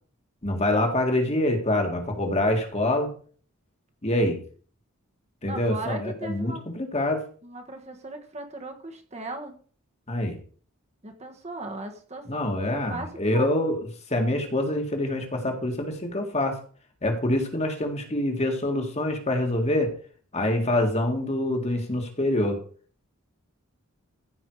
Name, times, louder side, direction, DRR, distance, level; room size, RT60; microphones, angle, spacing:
voice 1, 0.4-3.1 4.0-4.4 5.4-7.2 10.1-10.4 12.3-16.6 17.0-19.9 20.3-22.6, left 1 dB, 30° left, 4 dB, 2.0 m, -25 dB
voice 2, 5.4-6.6 7.4-9.5 11.0-13.5, right 2 dB, 30° right, 3 dB, 1.5 m, -38 dB
15.0 x 5.6 x 4.8 m, 0.43 s
head